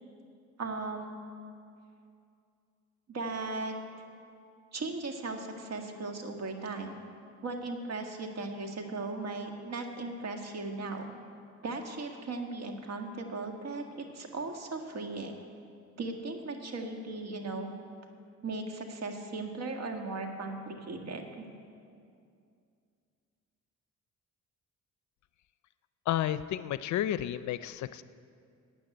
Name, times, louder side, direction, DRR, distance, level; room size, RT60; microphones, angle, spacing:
voice 1, 0.6-1.2 3.1-3.7 4.7-7.0 7.4-11.1 11.6-15.3 16.0-17.7 18.4-21.5, right 3 dB, 60° right, 4 dB, 1.9 m, -37 dB
voice 2, 26.1-28.0, left 12 dB, 70° left, 14 dB, 0.5 m, -31 dB
13.0 x 8.7 x 9.0 m, 2.4 s
cardioid pair, 90°, 30 cm